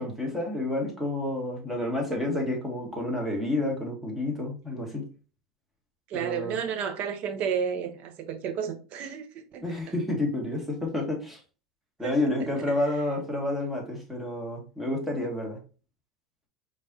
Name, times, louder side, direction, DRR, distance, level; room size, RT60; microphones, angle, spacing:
voice 1, 0.0-5.0 6.1-6.6 9.6-11.4 12.0-15.6, left 1 dB, 5° right, 2.4 m, -29 dB
voice 2, 6.1-9.7 12.0-12.1 12.6-12.9, right 7 dB, 55° right, 1.1 m, -32 dB
5.2 x 3.6 x 2.8 m
supercardioid pair, 105°, 3 cm